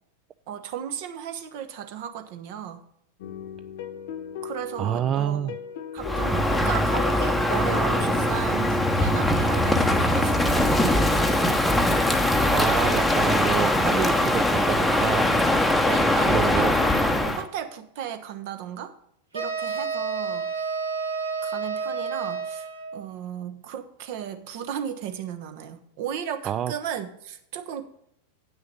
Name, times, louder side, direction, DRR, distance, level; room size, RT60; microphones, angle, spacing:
voice 1, 0.5-2.8 4.4-5.6 5.9-11.3 15.8-18.9 19.3-20.7 21.4-22.7 22.9-27.9, right 9 dB, 50° right, 8 dB, 1.0 m, -35 dB
sound 1, 3.2-8.5, left 8 dB, 55° left, 0.9 m, -38 dB
voice 2, 4.8-5.6 12.5-15.3 16.3-16.7 26.4-26.7, right 10 dB, 30° right, 11 dB, 0.4 m, -27 dB
Crow, 6.0-17.4, left 1 dB, 5° left, 0.9 m, -22 dB
sound 2, 19.3-23.0, right 5 dB, 75° right, 1.7 m, -30 dB
9.1 x 6.2 x 5.5 m, 0.76 s
figure-of-eight pair, 90°, 0 cm